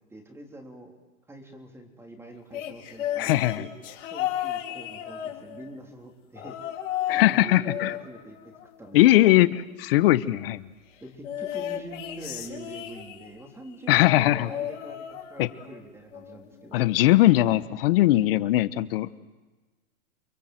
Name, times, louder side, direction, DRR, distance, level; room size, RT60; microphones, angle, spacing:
voice 1, 0.1-1.0 1.3-3.7 4.1-6.7 7.1-8.4 8.8-9.3 11.0-16.9, right 1 dB, 5° right, 2 dB, 3.5 m, -44 dB
sound 1, 2.5-5.8 6.4-7.4 7.6-9.2 11.2-13.4 14.3-15.8 16.1-16.5 17.6-17.7, left 11 dB, 60° left, 4.5 m, -34 dB
voice 2, 3.2-3.6 7.1-7.9 8.9-10.7 13.9-14.5 15.4-15.5 16.7-19.2, left 16 dB, 45° left, 15 dB, 1.2 m, -20 dB
30.0 x 22.5 x 7.9 m, 1.2 s
hypercardioid pair, 145°, 41 cm